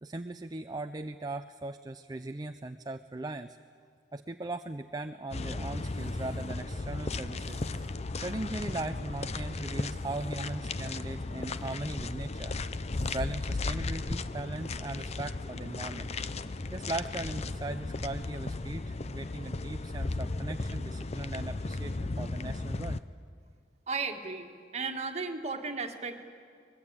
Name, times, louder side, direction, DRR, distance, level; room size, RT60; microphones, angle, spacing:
voice 1, 0.0-3.6 4.1-7.9 8.2-12.6 12.9-16.1 16.7-23.0, right 2 dB, 20° right, 7 dB, 0.6 m, -39 dB
sound 1, 5.3-23.0, left 3 dB, 35° left, 0.7 m, -35 dB
voice 2, 23.9-24.5 24.7-26.2, right 4 dB, 40° right, 5 dB, 1.9 m, -35 dB
24.5 x 20.5 x 8.9 m, 2.2 s
head